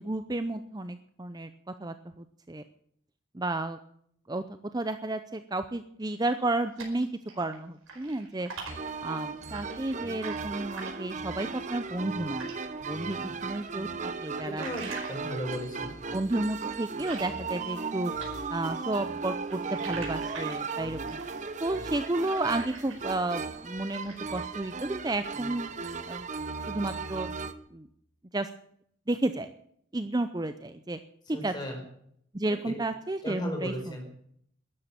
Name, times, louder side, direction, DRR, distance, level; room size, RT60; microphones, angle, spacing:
voice 1, 0.0-1.5 1.8-2.6 3.3-3.8 4.3-4.4 4.7-7.1 7.4-8.5 9.0-12.5 12.8-14.7 16.1-18.1 18.5-21.2 21.6-25.7 26.1-26.3 26.7-27.9 28.3-28.5 29.1-29.5 29.9-31.0 31.3-31.5 32.3-33.7, right 2 dB, 20° right, 10 dB, 0.6 m, -32 dB
sound 1, 6.3-7.6 7.8-12.7 13.0-17.9 18.2-23.3 23.6-24.4, right 4 dB, 90° right, 5.0 m, -45 dB
sound 2, 8.7-27.5, right 4 dB, 35° right, 1.1 m, -36 dB
voice 2, 14.6-15.9 31.3-31.8 32.4-32.7 33.2-34.0, equal, 20° left, 2 dB, 5.2 m, -36 dB
13.0 x 11.5 x 8.9 m, 0.68 s
head